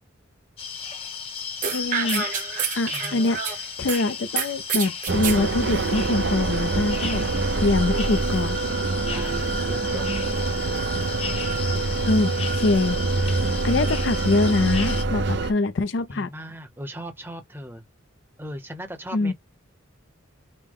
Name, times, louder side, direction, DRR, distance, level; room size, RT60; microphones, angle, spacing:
sound 1, 0.6-15.0, left 6 dB, 30° left, 0.8 m, -35 dB
sound 2, 1.6-4.0 4.4-5.4, right 7 dB, 40° right, 1.1 m, -28 dB
voice 1, 1.7-2.3 2.8-7.2 7.6-8.6 12.0-13.3 13.6-16.3 19.1-19.3, left 2 dB, 60° left, 0.5 m, -24 dB
voice 2, 2.9-3.2 8.9-10.5 16.1-17.9 18.4-19.3, equal, 10° right, 0.8 m, -38 dB
sound 3, 5.1-15.5, right 3 dB, 60° right, 0.6 m, -25 dB
5.2 x 2.1 x 3.5 m
head